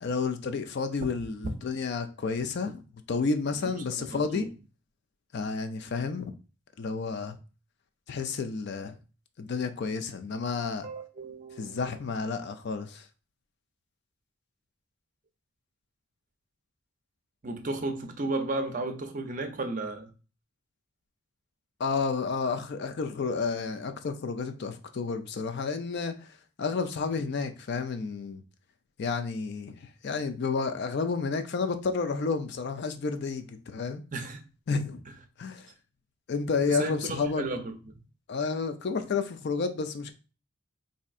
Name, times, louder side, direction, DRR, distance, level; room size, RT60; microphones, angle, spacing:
voice 1, 0.0-2.8 3.1-4.5 5.3-6.3 6.8-7.4 8.1-9.0 9.4-10.9 11.6-13.0 21.8-28.4 29.0-34.0 34.7-35.0 35.4-35.7 36.3-37.5 38.3-40.1, left 4 dB, 50° left, 0.4 m, -31 dB
voice 2, 3.9-4.5 10.8-11.9 17.4-20.1 34.1-34.4 36.7-37.8, right 2 dB, 35° right, 0.5 m, -34 dB
4.2 x 2.6 x 2.4 m
head